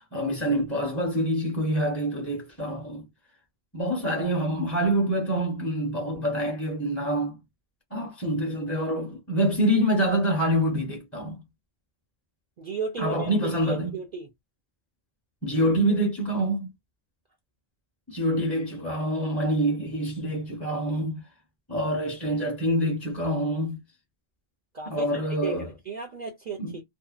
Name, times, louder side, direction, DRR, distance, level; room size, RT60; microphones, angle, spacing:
voice 1, 0.0-3.1 3.7-7.4 7.9-11.4 13.0-14.0 15.4-16.7 18.1-21.2 21.7-23.8 24.9-25.7 26.6-26.8, equal, 15° left, 0.7 m, -26 dB
voice 2, 12.6-14.3 24.7-26.8, right 4 dB, 50° right, 0.6 m, -35 dB
2.6 x 2.2 x 2.4 m
omnidirectional pair, 1.1 m